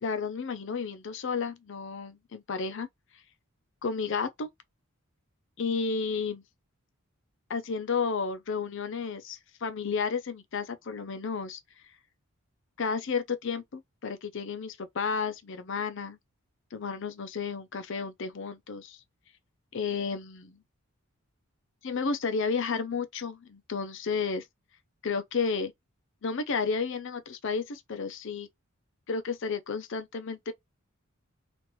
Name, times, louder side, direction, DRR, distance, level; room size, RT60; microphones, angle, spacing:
voice 1, 0.0-2.9 3.8-4.5 5.6-6.4 7.5-11.6 12.8-16.2 16.7-19.0 19.7-20.6 21.8-24.5 25.0-25.7 26.2-28.5 29.1-30.5, left 5 dB, 55° left, 0.5 m, -32 dB
3.0 x 2.5 x 3.0 m
head